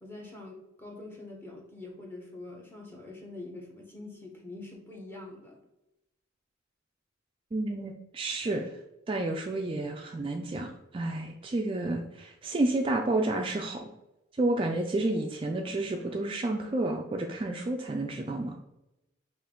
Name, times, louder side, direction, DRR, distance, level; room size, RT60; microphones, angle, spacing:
voice 1, 0.0-5.6, left 2 dB, 10° left, 0 dB, 0.9 m, -44 dB
voice 2, 7.5-8.7 9.1-13.9 14.4-18.5, right 2 dB, 25° right, 2 dB, 0.3 m, -30 dB
5.4 x 2.5 x 3.7 m, 0.93 s
head